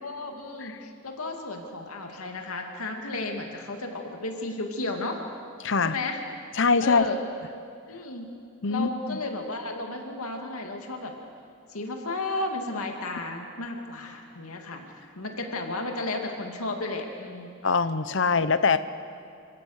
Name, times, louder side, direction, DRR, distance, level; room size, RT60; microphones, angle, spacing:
voice 1, 0.0-5.2 5.8-6.2 6.8-7.2 7.9-8.3 8.7-11.1 11.7-17.5 18.2-18.4, left 2 dB, 85° left, 3 dB, 2.4 m, -33 dB
voice 2, 5.6-6.0 6.5-7.1 8.6-9.2 17.6-18.8, left 4 dB, 55° left, 13 dB, 0.8 m, -23 dB
27.0 x 16.5 x 6.5 m, 2.6 s
head